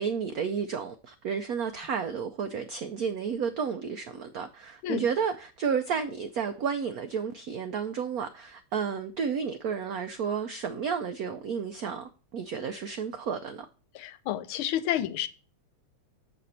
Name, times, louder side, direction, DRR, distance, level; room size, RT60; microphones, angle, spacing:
voice 1, 0.0-13.7, right 6 dB, 80° right, 0.8 m, -32 dB
voice 2, 13.9-15.3, left 11 dB, 85° left, 1.5 m, -30 dB
6.8 x 6.2 x 4.2 m
omnidirectional pair, 2.3 m